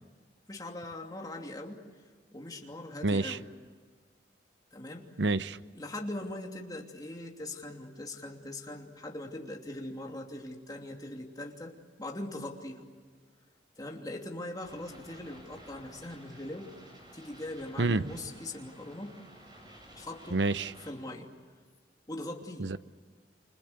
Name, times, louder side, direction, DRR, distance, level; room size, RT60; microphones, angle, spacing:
voice 1, 0.5-1.8 2.3-3.5 4.7-5.1 5.7-12.9 13.8-16.7 17.1-19.2 19.9-20.4 20.8-21.3 22.1-22.7, left 1 dB, 20° left, 2.9 m, -41 dB
voice 2, 3.0-3.4 5.2-5.6 17.8-18.1 20.3-20.7 22.6-22.8, right 3 dB, 85° right, 0.8 m, -28 dB
sound 1, 14.6-20.9, right 1 dB, 25° right, 7.9 m, -53 dB
29.0 x 25.5 x 8.1 m
head